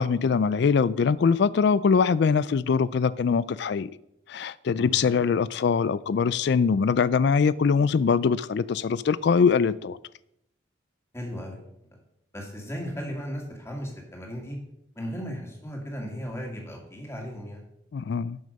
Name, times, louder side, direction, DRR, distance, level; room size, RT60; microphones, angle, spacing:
voice 1, 0.0-3.9 4.3-10.0 17.9-18.4, left 5 dB, 60° left, 18 dB, 0.3 m, -23 dB
voice 2, 11.1-11.6 11.9-12.0 12.3-14.6 14.9-17.6, equal, 15° left, 0 dB, 2.3 m, -36 dB
12.0 x 6.4 x 5.2 m, 0.78 s
head